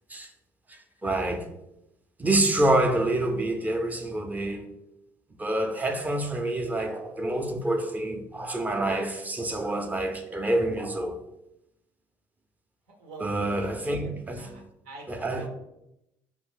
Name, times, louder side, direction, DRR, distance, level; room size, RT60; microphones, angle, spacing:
voice 1, 0.7-1.5 2.2-4.7 5.4-11.2 13.2-14.6 15.1-15.5, right 1 dB, 20° right, 0.5 m, -27 dB
voice 2, 13.0-13.3 13.7-15.1 15.4-15.5, right 2 dB, 90° right, 0.8 m, -45 dB
2.6 x 2.4 x 3.8 m
supercardioid pair, 75°, 8 cm